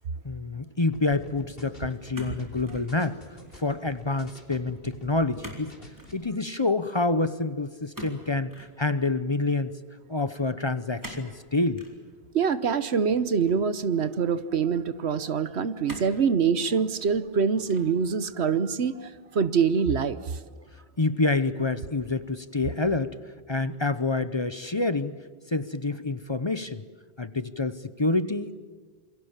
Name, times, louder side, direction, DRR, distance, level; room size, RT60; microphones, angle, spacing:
voice 1, 0.2-3.2 3.6-5.7 6.1-9.7 10.1-11.8 21.0-23.1 23.5-25.2 25.5-26.8 27.2-28.6, left 3 dB, 30° left, 13 dB, 0.8 m, -27 dB
sound 1, 0.9-5.4 5.7-6.1, equal, 60° left, 3.6 m, -45 dB
sound 2, 2.1-2.9 3.3-3.7 5.4-5.7 5.9-6.2 7.9-8.7 11.0-11.3 11.8-12.0 12.9-13.7 14.4-14.5 15.9-16.2 16.8-17.3 17.7-18.0, right 1 dB, 15° right, 4.1 m, -43 dB
voice 2, 12.3-20.4, right 6 dB, 75° right, 14 dB, 1.3 m, -25 dB
27.5 x 23.5 x 7.4 m, 1.5 s
omnidirectional pair, 1.1 m